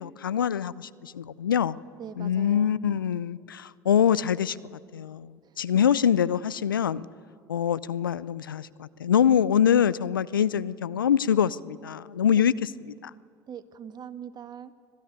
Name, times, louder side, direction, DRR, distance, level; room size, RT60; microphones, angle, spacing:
voice 1, 0.0-1.8 2.2-7.1 7.5-12.5 13.0-13.1, left 8 dB, 85° left, 19 dB, 0.5 m, -24 dB
voice 2, 2.0-2.7 5.4-5.8 12.3-12.5 13.5-14.7, right 8 dB, 40° right, 11 dB, 1.6 m, -42 dB
25.0 x 16.0 x 9.4 m, 2.4 s
hypercardioid pair, 70°, 11 cm